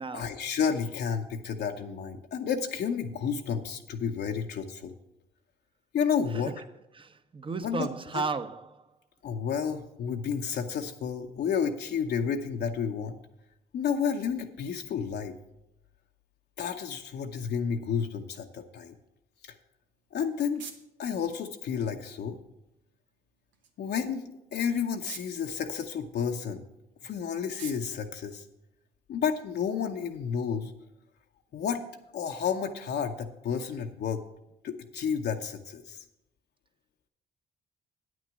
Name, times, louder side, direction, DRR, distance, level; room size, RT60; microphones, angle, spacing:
voice 1, 0.1-4.9 5.9-6.5 7.6-8.2 9.2-13.2 13.7-15.4 16.6-18.9 19.4-19.5 20.1-20.6 21.0-22.4 23.8-26.6 27.0-28.4 29.1-30.7 31.5-31.8 32.1-34.2 34.6-36.0, left 7 dB, 65° left, 0.8 m, -31 dB
voice 2, 7.0-8.8, right 4 dB, 25° right, 0.8 m, -34 dB
sound 1, 19.8-29.2, right 7 dB, 80° right, 1.1 m, -52 dB
8.9 x 6.2 x 7.3 m
supercardioid pair, 65°, 19 cm